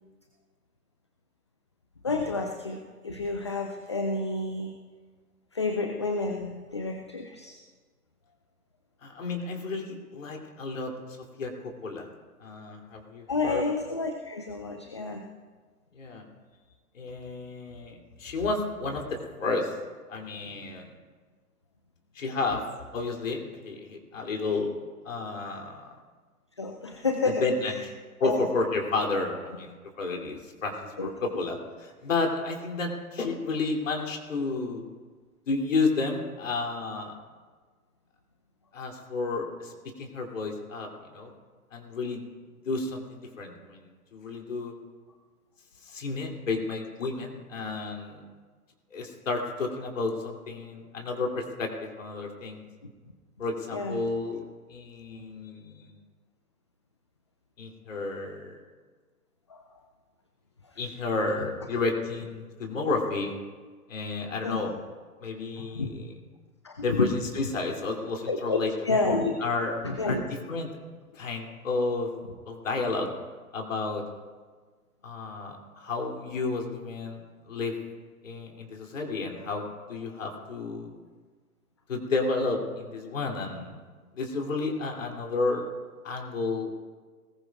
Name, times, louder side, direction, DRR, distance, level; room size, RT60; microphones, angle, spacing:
voice 1, 2.0-4.7 5.5-7.6 13.3-15.2 26.6-27.4 28.2-28.5 31.0-31.4 53.7-54.0 59.5-59.6 64.4-64.6 65.6-65.9 66.6-67.1 68.3-68.6 68.8-69.3 69.8-70.2, left 3 dB, 20° left, 4 dB, 0.4 m, -29 dB
voice 2, 9.0-12.1 12.4-13.6 15.9-16.2 16.9-19.7 20.1-20.9 22.1-22.6 22.9-24.7 25.0-25.9 27.2-27.9 28.2-34.8 35.5-37.2 38.7-39.7 40.0-41.3 41.7-42.2 42.6-44.7 45.8-48.2 48.9-52.6 53.4-54.4 54.7-55.9 57.6-58.6 60.8-63.4 63.9-64.7 65.2-66.1 66.8-68.7 69.4-69.7 70.1-70.7 71.1-72.1 72.5-73.1 73.5-74.0 75.0-77.2 77.5-77.7 78.2-81.0 81.9-83.8 84.1-85.6 86.0-86.7, left 3 dB, 55° left, 1 dB, 2.9 m, -31 dB
21.0 x 20.0 x 2.4 m, 1.5 s
figure-of-eight pair, 120°, 46 cm